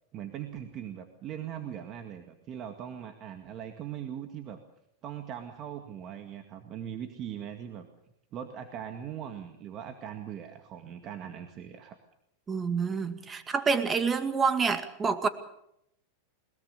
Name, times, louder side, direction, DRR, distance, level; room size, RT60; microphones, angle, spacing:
voice 1, 0.1-4.6 5.0-7.9 8.3-12.0, right 9 dB, 40° right, 6 dB, 2.0 m, -40 dB
voice 2, 12.5-15.3, right 5 dB, 20° right, 9 dB, 2.1 m, -27 dB
21.0 x 21.0 x 6.7 m, 0.78 s
hypercardioid pair, 110°, 0 cm